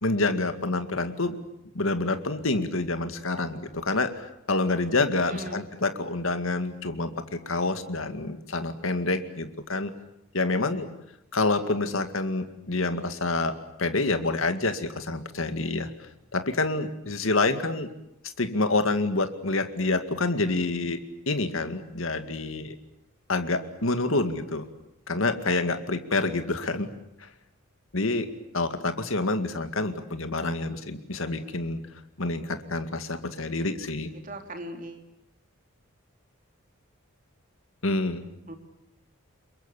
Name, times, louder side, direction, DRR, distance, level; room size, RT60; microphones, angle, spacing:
voice 1, 0.0-1.3 1.7-9.9 10.3-10.9 11.3-13.5 13.8-17.9 18.2-21.0 21.3-22.8 23.3-24.7 25.1-26.9 27.2-27.3 27.9-28.3 28.5-31.8 32.2-34.1 37.8-38.2, left 2 dB, 70° left, 8 dB, 2.2 m, -27 dB
voice 2, 5.3-5.6 34.2-35.1 38.5-38.6, right 1 dB, 40° right, 4 dB, 3.4 m, -39 dB
28.0 x 23.0 x 8.3 m, 0.83 s
head